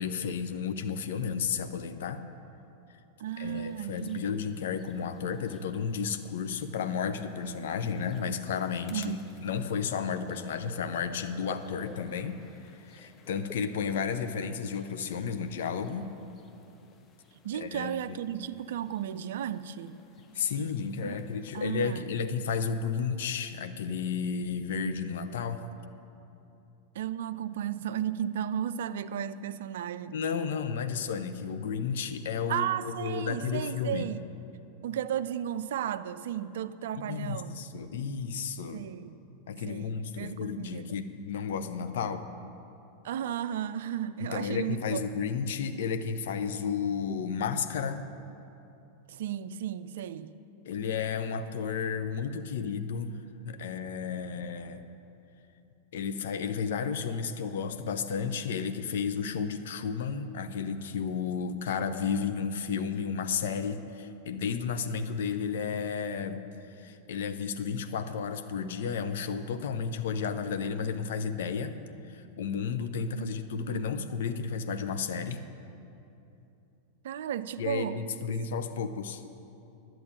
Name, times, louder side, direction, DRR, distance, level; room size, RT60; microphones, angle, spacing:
voice 1, 0.0-2.2 3.4-16.1 17.5-18.2 20.3-25.6 30.1-34.2 36.9-38.8 39.5-42.2 44.2-48.0 50.6-53.1 53.4-54.8 55.9-66.4 66.7-71.8 72.0-75.4 77.6-79.2, left 6 dB, 55° left, 0.7 m, -32 dB
voice 2, 3.2-4.6 8.9-9.5 17.4-20.0 21.0-21.2 21.5-22.0 26.9-30.2 32.5-34.3 34.8-37.6 38.7-39.2 39.7-41.0 43.0-45.0 49.1-50.3 73.2-74.1 77.0-78.3, right 10 dB, 55° right, 0.4 m, -34 dB
sound 1, 3.3-22.0, left 4 dB, 30° left, 0.8 m, -55 dB
11.0 x 7.7 x 8.9 m
figure-of-eight pair, 90°, 0 cm